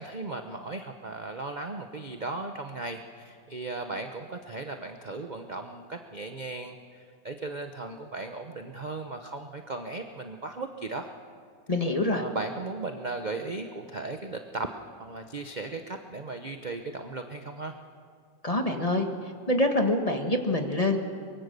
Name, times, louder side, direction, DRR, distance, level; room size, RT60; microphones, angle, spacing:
voice 1, 0.0-11.1 12.1-14.7 15.0-17.8, right 3 dB, 35° right, 5 dB, 0.8 m, -37 dB
voice 2, 11.7-12.2 18.4-19.1 19.5-21.0, left 1 dB, 20° left, 4 dB, 1.5 m, -25 dB
24.0 x 22.5 x 6.8 m, 2.2 s
omnidirectional pair, 1.9 m